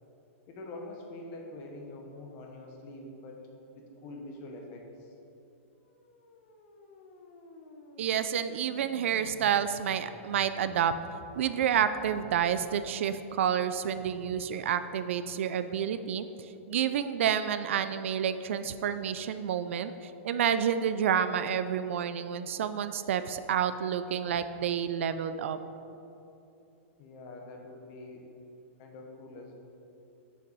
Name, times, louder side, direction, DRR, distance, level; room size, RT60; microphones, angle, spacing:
voice 1, 0.5-3.4 3.7-5.1 27.0-28.3 28.8-29.5, left 2 dB, 30° left, 2 dB, 1.0 m, -45 dB
sound 1, 5.7-12.8, left 3 dB, 50° left, 1.0 m, -53 dB
voice 2, 8.0-10.9 11.4-25.6, right 8 dB, 65° right, 12 dB, 0.4 m, -29 dB
8.9 x 5.9 x 4.0 m, 2.9 s
supercardioid pair, 170°, 7 cm